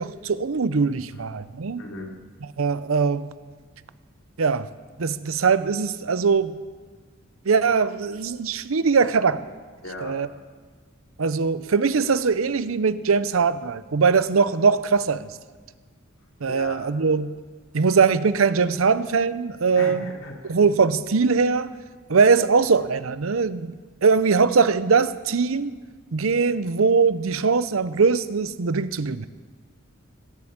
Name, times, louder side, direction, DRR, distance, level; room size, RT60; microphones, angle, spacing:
voice 1, 0.0-1.8 2.6-3.3 4.4-4.7 5.0-6.6 7.5-9.4 10.0-10.3 11.2-15.3 16.4-17.3 17.7-20.1 20.5-21.7 22.1-23.8 24.0-25.8 26.1-29.3, right 5 dB, 90° right, 0.7 m, -21 dB
voice 2, 1.8-2.1 9.0-9.1 9.8-10.2 16.5-16.8 18.8-18.9 19.8-20.5, left 1 dB, 90° left, 2.8 m, -37 dB
19.5 x 7.9 x 8.8 m
head